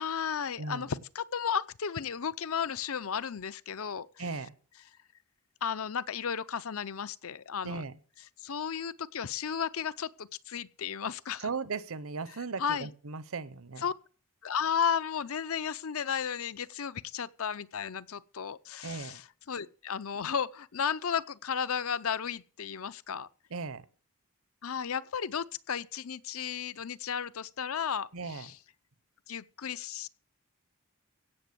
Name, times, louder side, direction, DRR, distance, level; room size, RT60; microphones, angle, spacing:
voice 1, 0.0-4.1 5.6-7.8 8.4-11.5 12.6-12.9 13.8-13.9 14.4-19.2 19.5-23.3 24.6-28.5 29.3-30.1, left 7 dB, 65° left, 0.6 m, -34 dB
voice 2, 0.6-0.9 4.2-4.6 7.6-8.0 11.4-13.9 18.8-19.2 23.5-23.8 28.1-28.5, right 4 dB, 65° right, 0.8 m, -37 dB
16.5 x 7.0 x 6.7 m
head